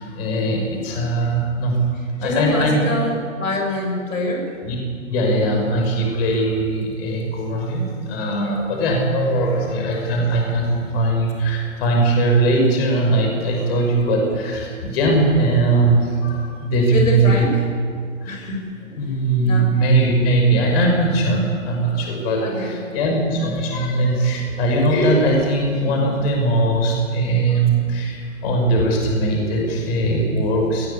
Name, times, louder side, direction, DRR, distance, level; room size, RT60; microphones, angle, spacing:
voice 1, 0.0-1.8 2.1-2.8 4.6-4.8 5.1-17.5 18.2-18.5 18.9-30.9, right 2 dB, 45° left, 1 dB, 6.1 m, -20 dB
voice 2, 2.2-4.5 9.5-9.9 16.9-17.6 18.3-18.6 19.0-19.1 19.4-19.7 22.4-22.7, left 2 dB, 75° left, 1 dB, 6.9 m, -25 dB
21.0 x 18.0 x 8.6 m, 2.2 s
hypercardioid pair, 125°, 40 cm